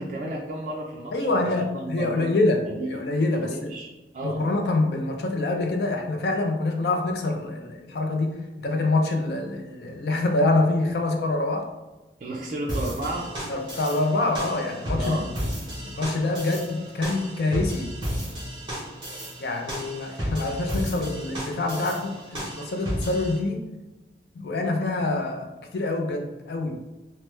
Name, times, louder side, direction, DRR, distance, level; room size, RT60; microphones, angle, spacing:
voice 1, 0.0-2.3 2.7-3.0 3.4-4.5 12.2-13.4 15.0-15.7, right 1 dB, 45° right, -3 dB, 0.3 m, -33 dB
voice 2, 1.1-2.6 2.9-3.7 4.2-11.7 13.5-15.3 15.8-17.9 19.4-23.7 24.4-26.8, left 2 dB, 65° left, 3 dB, 0.4 m, -26 dB
sound 1, 12.7-23.4, equal, 25° right, 1.0 m, -33 dB
3.2 x 2.1 x 3.0 m, 1.1 s
head